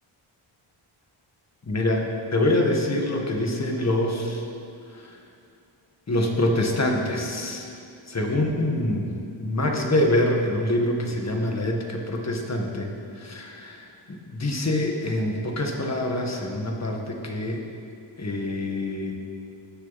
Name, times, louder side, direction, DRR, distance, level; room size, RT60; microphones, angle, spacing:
voice 1, 1.6-4.4 4.9-5.0 6.1-7.7 8.1-9.1 9.4-17.6 18.2-19.1, left 1 dB, 30° left, 1 dB, 1.7 m, -25 dB
17.5 x 6.6 x 4.2 m, 2.5 s
cardioid pair, 80°, 50 cm